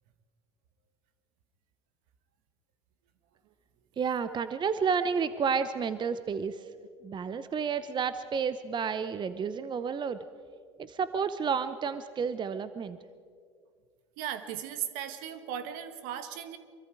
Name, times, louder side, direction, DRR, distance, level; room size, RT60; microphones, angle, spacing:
voice 1, 4.0-6.6 7.0-10.2 10.9-13.0, right 6 dB, 30° right, 12 dB, 0.9 m, -31 dB
voice 2, 14.2-16.6, right 10 dB, 65° right, 10 dB, 1.7 m, -37 dB
25.0 x 23.5 x 4.8 m, 2.1 s
hypercardioid pair, 85°, 15 cm